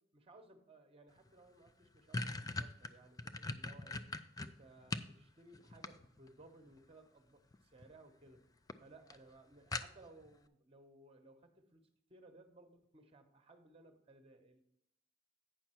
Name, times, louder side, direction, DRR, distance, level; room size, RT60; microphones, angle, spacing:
voice 1, 0.1-4.1 4.4-8.4 8.8-14.6, right 2 dB, 30° right, 7 dB, 1.0 m, -61 dB
sound 1, 1.3-1.4 1.7-5.1 5.5-6.4 7.5-7.9 8.3-8.4 8.7-8.8 9.1-9.2 9.7-10.3, left 2 dB, 20° left, 0.4 m, -41 dB
9.1 x 5.8 x 4.4 m, 0.79 s
head